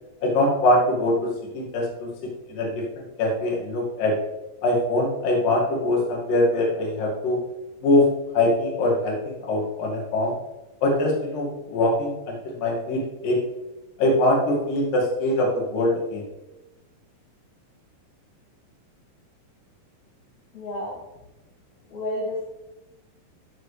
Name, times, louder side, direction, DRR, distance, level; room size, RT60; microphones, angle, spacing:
voice 1, 0.2-2.1 2.5-2.7 3.0-4.1 4.6-7.4 7.8-8.0 8.3-10.4 10.8-13.4 14.0-16.2, left 1 dB, 70° left, -2 dB, 3.6 m, -23 dB
voice 2, 20.5-20.9 21.9-22.4, left 1 dB, 55° left, -6 dB, 3.3 m, -30 dB
13.0 x 7.8 x 3.3 m, 1.0 s
omnidirectional pair, 4.1 m